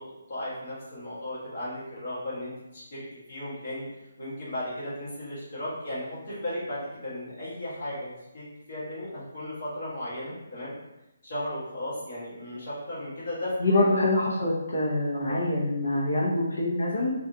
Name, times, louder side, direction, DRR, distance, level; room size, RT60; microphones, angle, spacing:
voice 1, 0.0-10.7 11.2-13.8 15.2-15.5, left 1 dB, 30° left, -9 dB, 1.2 m, -36 dB
voice 2, 13.6-17.1, left 2 dB, 75° left, -6 dB, 0.7 m, -25 dB
3.5 x 2.4 x 2.8 m, 0.93 s
hypercardioid pair, 180°, 0 cm